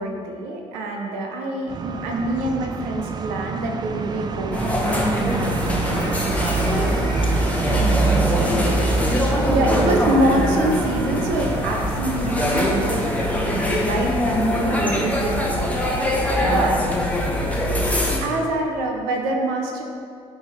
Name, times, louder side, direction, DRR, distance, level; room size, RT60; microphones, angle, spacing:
voice 1, 0.0-6.9 9.4-13.2 13.4-16.0 16.4-16.8 17.5-19.8, right 1 dB, 65° right, 2 dB, 0.7 m, -26 dB
sound 1, 1.7-13.8, right 4 dB, 25° right, 0.4 m, -26 dB
sound 2, 4.5-18.2, left 1 dB, 10° left, 0.9 m, -23 dB
voice 2, 7.6-9.7 16.4-16.9, left 2 dB, 30° left, 2 dB, 0.8 m, -31 dB
7.9 x 3.6 x 3.3 m, 2.3 s
figure-of-eight pair, 45°, 16 cm